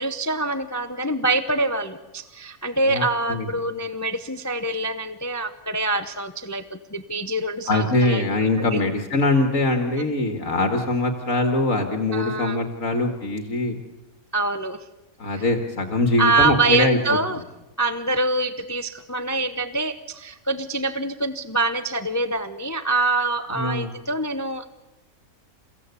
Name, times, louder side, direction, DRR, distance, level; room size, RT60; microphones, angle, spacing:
voice 1, 0.0-8.2 8.6-8.8 10.0-10.1 12.1-12.6 14.3-14.8 15.3-15.5 16.2-17.4 17.8-24.7, right 2 dB, 15° left, 11 dB, 0.8 m, -25 dB
voice 2, 7.7-13.8 15.2-17.0 23.5-23.9, left 2 dB, 60° left, 6 dB, 2.2 m, -22 dB
29.5 x 16.5 x 8.3 m, 1.1 s
omnidirectional pair, 1.6 m